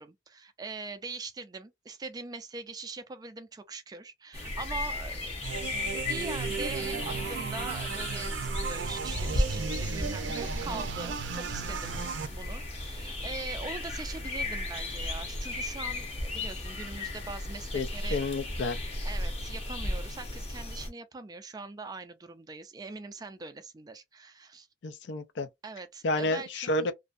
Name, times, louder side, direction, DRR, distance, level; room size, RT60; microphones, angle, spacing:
voice 1, 0.0-5.4 5.7-12.1 12.3-18.2 19.0-24.7 25.6-26.9, right 4 dB, 20° right, 0.3 m, -42 dB
sound 1, 4.3-20.9, left 1 dB, 35° left, 0.7 m, -35 dB
sound 2, 5.4-12.3, right 5 dB, 85° right, 0.4 m, -35 dB
voice 2, 17.7-18.8 24.8-25.5 26.0-26.9, left 2 dB, 75° left, 0.4 m, -30 dB
2.5 x 2.1 x 2.4 m
head